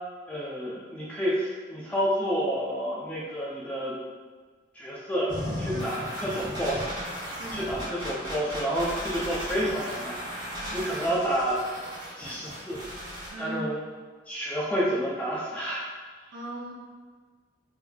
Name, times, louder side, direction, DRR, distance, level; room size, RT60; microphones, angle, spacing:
voice 1, 0.3-4.0 4.7-5.3 5.6-11.6 12.2-12.8 13.4-13.8 14.3-15.9, equal, 10° left, -6 dB, 0.4 m, -30 dB
sound 1, 5.3-13.3, equal, 25° right, 1.5 m, -36 dB
voice 2, 7.4-7.7 10.6-10.8 13.3-13.6 16.3-16.7, right 1 dB, 70° right, -5 dB, 0.6 m, -38 dB
3.5 x 3.2 x 2.2 m, 1.5 s
head